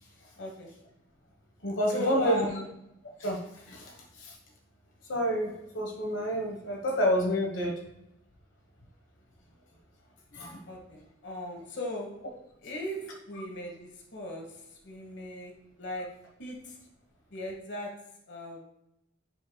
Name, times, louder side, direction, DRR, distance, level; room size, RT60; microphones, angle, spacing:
voice 1, 0.4-0.7 1.9-2.7 10.7-12.1 12.6-16.1 16.4-16.8 17.3-17.9 18.3-18.6, left 1 dB, 65° left, 0 dB, 1.3 m, -38 dB
voice 2, 1.6-2.5 3.2-3.4 3.7-3.9 5.1-7.8 10.3-10.6, equal, 90° left, 0 dB, 1.2 m, -28 dB
10.5 x 4.9 x 2.3 m, 0.83 s
head